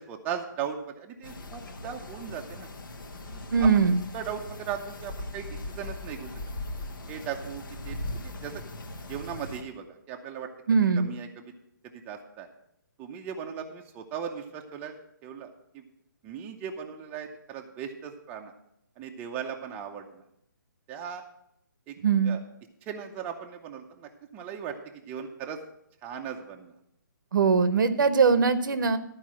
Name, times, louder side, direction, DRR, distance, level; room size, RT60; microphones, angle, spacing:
voice 1, 0.0-2.7 3.2-3.8 4.1-6.3 7.1-8.6 9.1-10.5 11.0-11.6 11.8-12.5 13.0-15.0 15.2-15.9 16.2-18.5 19.0-20.2 20.9-21.2 21.9-22.0 22.2-22.4 22.8-25.6 26.0-26.7, right 8 dB, 15° right, 2 dB, 0.7 m, -38 dB
sound 1, 1.2-9.6, left 1 dB, 75° left, 1.3 m, -39 dB
voice 2, 3.5-4.0 10.7-11.1 22.0-22.4 27.3-29.0, right 5 dB, 70° right, 12 dB, 0.9 m, -21 dB
11.5 x 4.7 x 7.4 m, 0.76 s
hypercardioid pair, 160°, 11 cm